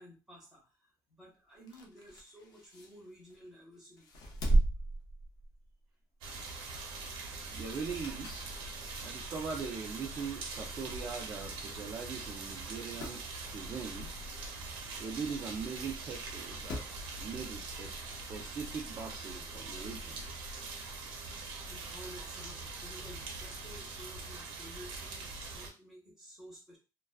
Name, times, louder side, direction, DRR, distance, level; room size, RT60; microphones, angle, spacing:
voice 1, 0.0-4.1 6.6-6.7 21.7-26.8, equal, 5° right, -3 dB, 0.9 m, -53 dB
sound 1, 1.5-3.5 4.0-5.8 6.2-6.4 7.7-8.5 9.0-9.1 10.0-10.1 10.3-10.4 10.6-10.7 11.6-11.7 12.1-12.2 12.5-13.2 15.1-15.2 16.2-17.0 18.3-18.4, right 2 dB, 55° left, 0.6 m, -35 dB
sound 2, 6.2-25.7, right 3 dB, 85° right, 0.6 m, -43 dB
voice 2, 7.5-8.5 9.0-14.1 15.0-18.0 18.3-20.2, right 5 dB, 30° right, -2 dB, 0.4 m, -41 dB
2.3 x 2.2 x 2.3 m, 0.30 s
cardioid pair, 160°, 8 cm